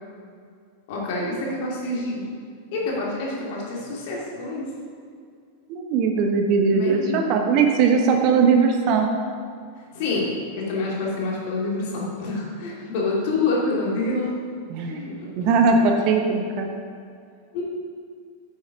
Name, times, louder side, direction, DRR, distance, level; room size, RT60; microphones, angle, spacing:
voice 1, 0.9-2.3 2.7-4.6 6.7-7.3 9.9-14.3 14.9-15.4 17.5-17.6, left 2 dB, 50° left, -3 dB, 2.7 m, -27 dB
voice 2, 5.7-9.1 14.7-15.0 15.4-16.7, right 5 dB, 40° right, 3 dB, 1.1 m, -20 dB
9.4 x 7.5 x 5.2 m, 2.3 s
figure-of-eight pair, 90°, 0 cm